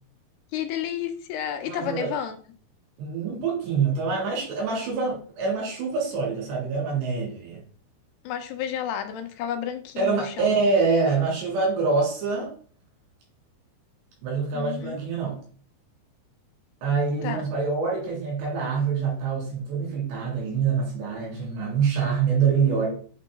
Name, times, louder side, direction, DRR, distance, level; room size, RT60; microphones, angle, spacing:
voice 1, 0.5-2.4 8.2-10.5 14.5-15.0 17.2-17.4, left 9 dB, 80° left, 7 dB, 2.6 m, -31 dB
voice 2, 1.6-2.1 3.0-7.6 10.0-12.5 14.2-15.4 16.8-22.9, right 5 dB, 90° right, -1 dB, 4.8 m, -25 dB
8.2 x 3.2 x 3.8 m, 0.43 s
omnidirectional pair, 4.8 m